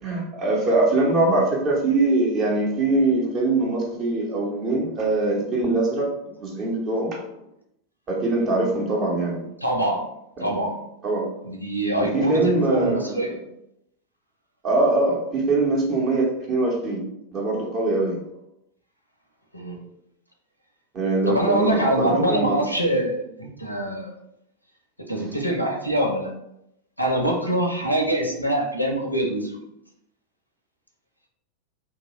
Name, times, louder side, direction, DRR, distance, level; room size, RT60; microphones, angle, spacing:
voice 1, 0.0-6.1 6.4-7.2 8.1-9.4 10.4-10.5 11.0-11.2 12.1-13.2 14.6-17.0 17.3-18.2 20.9-22.7, right 2 dB, 30° right, -1 dB, 0.8 m, -22 dB
voice 2, 9.6-10.0 10.4-10.7 11.4-13.4 19.5-19.8 21.3-24.1 25.1-26.3 27.0-29.6, right 1 dB, 90° left, 1 dB, 0.5 m, -24 dB
2.8 x 2.3 x 2.9 m, 0.81 s
figure-of-eight pair, 90°, 0 cm